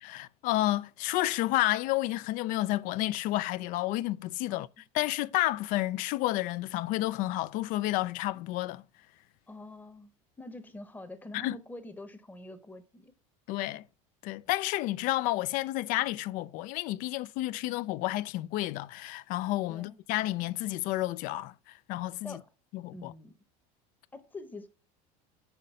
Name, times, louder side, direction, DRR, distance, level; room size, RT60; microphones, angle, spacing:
voice 1, 0.0-4.7 4.9-8.8 11.3-11.6 13.5-13.9 14.2-21.5 21.9-22.4 22.7-23.1, left 16 dB, 55° left, 0.4 m, -30 dB
voice 2, 9.5-10.1 10.4-13.1 19.7-20.0 22.2-22.5 22.9-23.3 24.1-24.7, left 2 dB, 10° left, 0.9 m, -45 dB
5.8 x 5.2 x 5.4 m
supercardioid pair, 130°, 16 cm